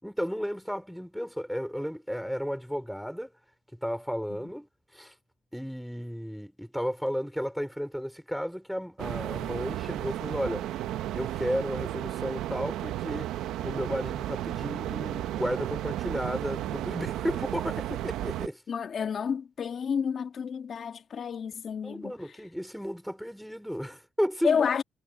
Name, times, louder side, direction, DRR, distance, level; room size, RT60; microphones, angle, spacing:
voice 1, 0.0-3.3 3.8-4.7 4.9-5.1 5.5-10.7 11.1-13.3 13.6-18.6 21.8-24.7, equal, ahead, 4.8 m, -33 dB
sound 1, 9.0-18.5, right 13 dB, 90° right, 0.9 m, -33 dB
voice 2, 18.7-22.1 24.4-24.8, left 7 dB, 55° left, 1.6 m, -30 dB
cardioid pair, 90°, 0 cm